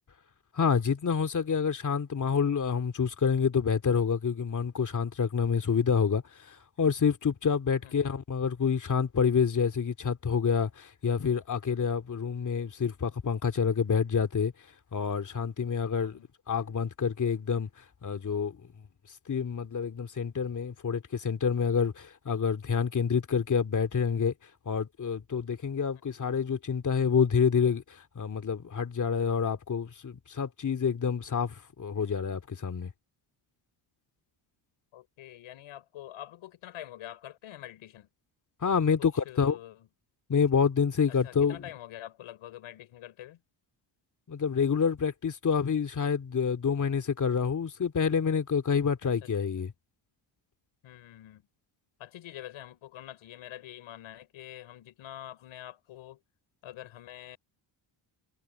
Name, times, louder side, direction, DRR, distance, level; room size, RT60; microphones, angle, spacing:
voice 1, 0.5-14.5 14.9-16.2 16.5-17.7 18.0-18.6 19.3-24.3 24.7-27.8 28.2-32.9 38.6-39.6 40.3-41.6 44.3-49.7, left 6 dB, 40° left, 2.6 m, -28 dB
voice 2, 7.8-8.1 16.0-16.3 34.9-38.1 39.0-39.9 41.1-43.4 49.0-49.3 49.6-49.7 50.8-51.4 52.0-56.2 56.6-57.4, left 13 dB, 85° left, 4.9 m, -46 dB
cardioid pair, 100°, 48 cm